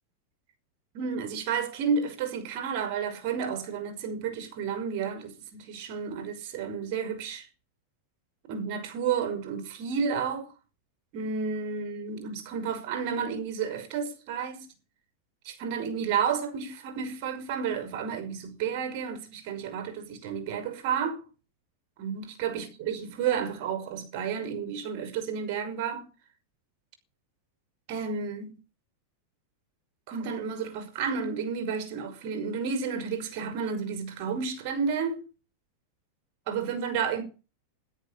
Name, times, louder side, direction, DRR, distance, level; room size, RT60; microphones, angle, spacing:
voice 1, 0.9-7.5 8.5-10.5 11.1-14.7 15.4-21.2 22.0-26.1 27.9-28.6 30.1-35.2 36.5-37.2, right 6 dB, 55° right, 5.8 m, -31 dB
13.5 x 12.0 x 9.1 m
hypercardioid pair, 115°, 0 cm